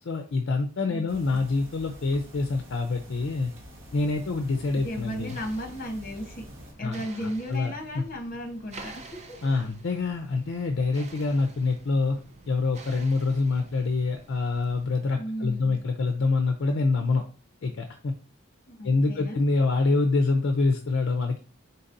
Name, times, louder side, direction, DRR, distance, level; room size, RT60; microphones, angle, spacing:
voice 1, 0.0-3.5 3.9-5.4 6.8-8.0 9.4-12.2 12.5-17.2 17.6-18.1 18.8-21.4, left 3 dB, 60° left, 5 dB, 0.4 m, -26 dB
voice 2, 0.9-1.4 4.7-6.4 6.8-9.4 15.1-15.8 18.7-19.4, equal, 40° left, 4 dB, 0.9 m, -35 dB
sound 1, 1.1-6.7, equal, 60° right, 1.4 m, -46 dB
sound 2, 3.6-15.1, right 3 dB, 35° right, 0.5 m, -49 dB
4.1 x 4.0 x 2.6 m, 0.37 s
head